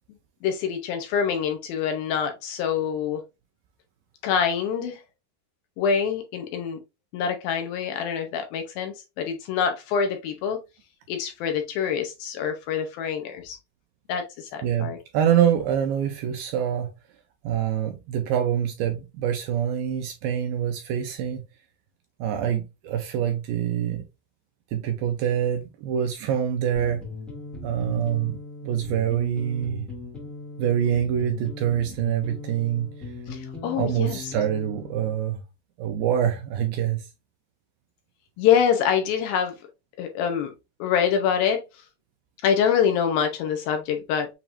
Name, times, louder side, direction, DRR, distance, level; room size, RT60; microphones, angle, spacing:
voice 1, 0.4-3.2 4.2-5.0 5.8-6.8 7.1-10.6 11.1-13.6 14.1-15.0 33.3-34.2 38.4-39.5 40.0-40.5 40.8-41.6 42.4-44.3, left 7 dB, 75° left, 2.3 m, -25 dB
voice 2, 14.6-16.9 17.4-21.4 22.2-24.0 24.7-27.0 27.6-29.9 30.6-33.1 33.8-35.4 35.8-37.1, right 9 dB, 85° right, 2.2 m, -25 dB
sound 1, 26.7-35.2, left 3 dB, ahead, 0.4 m, -39 dB
7.0 x 2.9 x 2.5 m
omnidirectional pair, 4.7 m